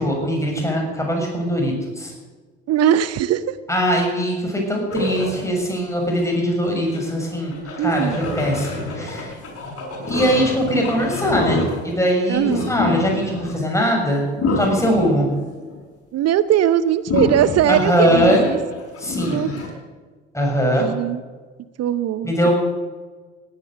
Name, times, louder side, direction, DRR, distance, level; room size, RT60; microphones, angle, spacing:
voice 1, 0.0-2.1 3.7-9.3 10.1-14.2 14.6-15.3 17.7-18.4 19.0-19.4 20.3-20.9 22.2-22.5, equal, 10° left, 0 dB, 6.7 m, -21 dB
voice 2, 2.7-3.6 7.8-8.2 12.3-12.7 16.1-18.6 19.2-19.6 20.8-21.2 21.8-22.3, right 10 dB, 45° right, 15 dB, 0.7 m, -20 dB
sound 1, 4.9-5.4 6.2-6.3 6.9-12.1 12.5-13.6 14.3-15.8 17.1-19.7, left 3 dB, 40° left, 5.7 m, -27 dB
17.0 x 10.0 x 8.2 m, 1.4 s
figure-of-eight pair, 50°, 34 cm